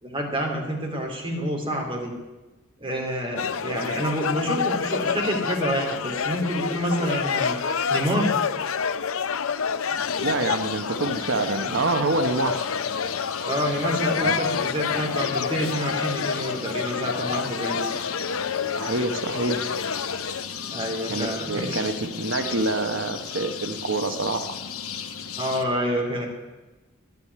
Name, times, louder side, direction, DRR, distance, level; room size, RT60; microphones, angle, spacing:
voice 1, 0.0-2.1 2.8-7.6 7.9-8.3 13.4-17.8 20.7-21.8 25.4-26.3, equal, 25° right, 1 dB, 3.0 m, -28 dB
sound 1, 3.4-20.4, left 6 dB, 70° left, 0.6 m, -28 dB
sound 2, 10.0-25.6, left 7 dB, 90° left, 1.1 m, -35 dB
voice 2, 10.2-12.7 14.2-14.4 18.7-19.7 21.1-24.6, right 2 dB, 60° right, 8 dB, 1.0 m, -26 dB
11.0 x 10.5 x 9.5 m, 1.1 s
head